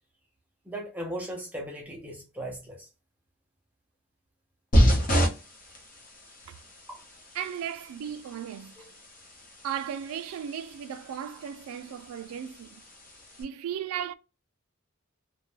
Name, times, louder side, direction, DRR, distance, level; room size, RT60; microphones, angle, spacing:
voice 1, 0.7-2.9 6.9-7.0 8.8-8.9, right 1 dB, 5° right, 0.5 m, -37 dB
sound 1, 4.7-13.4, equal, 40° left, 0.8 m, -30 dB
voice 2, 7.3-8.9 9.6-12.8 13.4-14.1, right 9 dB, 85° right, 0.3 m, -36 dB
2.4 x 2.1 x 3.1 m
head